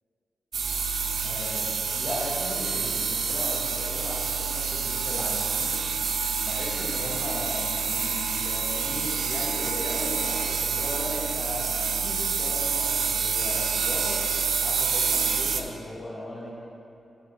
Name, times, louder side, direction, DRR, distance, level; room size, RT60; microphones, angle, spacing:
sound 1, 0.5-15.6, right 6 dB, 75° right, 0.5 m, -27 dB
voice 1, 1.1-5.8 6.4-14.2 14.6-16.5, left 1 dB, 35° left, -5 dB, 1.5 m, -37 dB
13.0 x 4.5 x 4.0 m, 2.8 s
wide cardioid pair, 145°, 0 cm